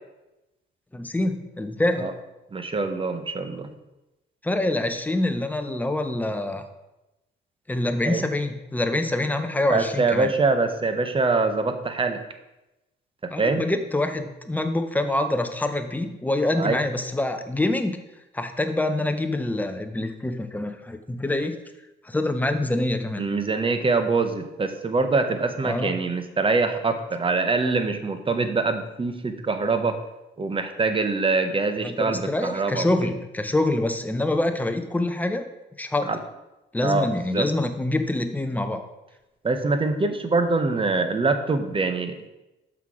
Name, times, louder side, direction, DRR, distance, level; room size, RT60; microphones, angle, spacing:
voice 1, 0.9-2.1 4.4-6.6 7.7-10.3 13.3-18.0 18.3-21.6 22.0-23.2 25.6-26.0 31.8-35.4 35.8-36.1 36.7-38.9, left 2 dB, 10° left, 7 dB, 0.7 m, -25 dB
voice 2, 2.5-3.7 8.0-8.2 9.7-12.2 13.2-13.6 16.6-16.8 23.2-30.0 30.4-33.1 36.0-36.2 36.8-37.5 39.4-42.1, right 3 dB, 25° right, 8 dB, 0.9 m, -24 dB
5.9 x 5.8 x 4.8 m, 0.97 s
cardioid pair, 90°, 20 cm